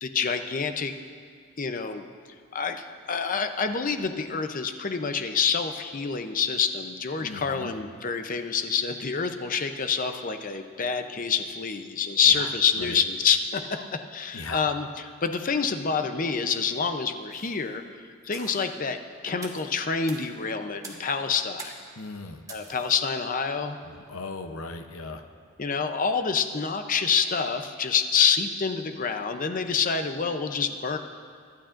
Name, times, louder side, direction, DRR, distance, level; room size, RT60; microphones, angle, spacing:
voice 1, 0.0-0.9 1.6-2.1 2.5-14.9 15.2-17.8 18.2-19.0 19.2-21.7 22.5-23.8 25.6-31.0, left 6 dB, 40° left, 7 dB, 0.6 m, -27 dB
voice 2, 7.2-7.8 12.3-12.5 12.8-13.0 14.3-14.7 20.9-21.1 22.0-22.4 23.8-25.2, left 3 dB, 75° left, 5 dB, 0.8 m, -38 dB
sound 1, 17.3-17.7 18.3-18.7 19.4-19.7 20.1-20.2 20.8-21.1 21.6-21.9 22.5-23.0, right 3 dB, 15° right, 1.2 m, -43 dB
23.5 x 11.5 x 2.6 m, 2.1 s
head